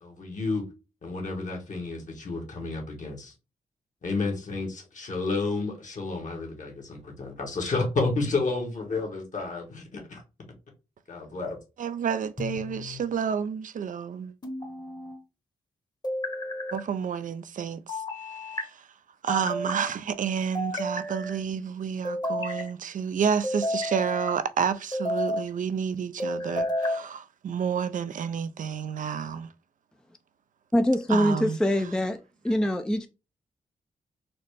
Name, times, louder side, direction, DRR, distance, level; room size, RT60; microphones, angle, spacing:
voice 1, 0.0-0.6 1.0-3.3 4.0-10.2 11.1-11.6, left 3 dB, 55° left, 1.5 m, -31 dB
voice 2, 11.8-14.3 16.7-18.0 18.5-18.9 19.2-29.5 31.1-31.6, right 7 dB, 60° right, 0.4 m, -30 dB
sound 1, 12.4-13.1 14.4-15.2 16.0-16.8 17.9-18.7 19.3-19.9 20.5-21.4 22.0-22.7 23.4-24.4 24.9-25.5 26.2-27.0, left 1 dB, 25° left, 1.1 m, -31 dB
voice 3, 30.7-32.2 32.4-33.1, equal, 5° left, 0.4 m, -24 dB
4.1 x 2.0 x 3.2 m
cardioid pair, 55°, 15 cm